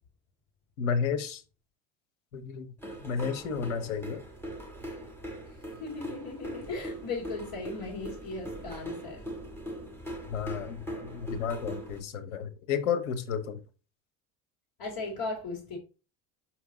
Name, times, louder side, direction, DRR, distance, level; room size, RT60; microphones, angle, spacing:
voice 1, 0.8-1.4 2.3-2.7 3.0-4.2 10.3-13.6, left 6 dB, 90° left, 1.1 m, -32 dB
sound 1, 2.8-12.0, right 1 dB, 5° left, 2.4 m, -41 dB
voice 2, 5.8-9.2 14.8-15.8, left 3 dB, 55° left, 3.4 m, -37 dB
6.2 x 4.6 x 3.8 m
hypercardioid pair, 75°, 41 cm